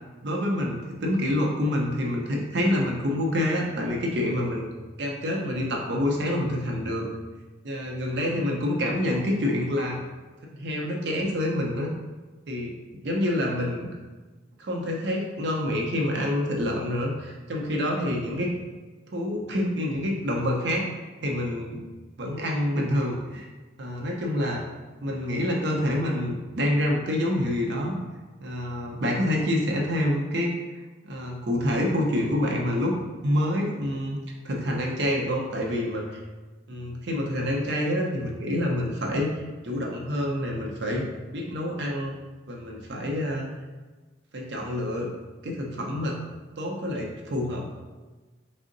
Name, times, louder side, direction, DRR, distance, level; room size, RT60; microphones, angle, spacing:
voice 1, 0.2-4.7 5.0-7.1 7.6-10.0 10.4-11.9 12.5-12.7 13.0-13.9 14.6-18.5 19.1-21.8 22.2-23.5 23.8-24.6 25.0-28.0 28.4-30.5 31.0-33.0 33.2-34.2 34.4-36.2 36.7-41.1 41.3-42.1 42.5-43.5 44.3-45.1 45.4-46.2 46.6-47.7, left 1 dB, 65° right, 0 dB, 0.6 m, -27 dB
3.6 x 2.1 x 3.8 m, 1.3 s
head